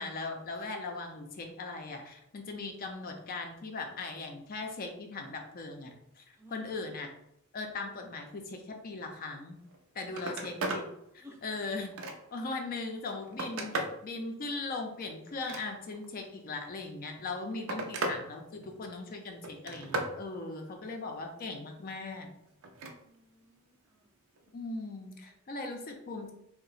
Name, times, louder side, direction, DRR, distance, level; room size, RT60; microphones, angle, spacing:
voice 1, 0.0-7.1 7.5-9.6 9.9-10.9 11.1-12.0 12.3-22.3 24.5-26.3, left 3 dB, 45° left, 3 dB, 0.4 m, -39 dB
voice 2, 6.3-6.9 11.2-11.4 17.5-17.7 22.9-24.6 25.2-25.3, left 1 dB, 15° right, 0 dB, 0.5 m, -59 dB
Telephone, 9.6-9.8 10.1-10.9 11.4-12.4 13.0-14.0 15.3-16.1 17.1-18.2 18.6-19.0 19.4-20.2 22.6-23.0 24.4-24.5, right 2 dB, 65° right, 0.5 m, -36 dB
2.7 x 2.1 x 4.0 m, 0.79 s
head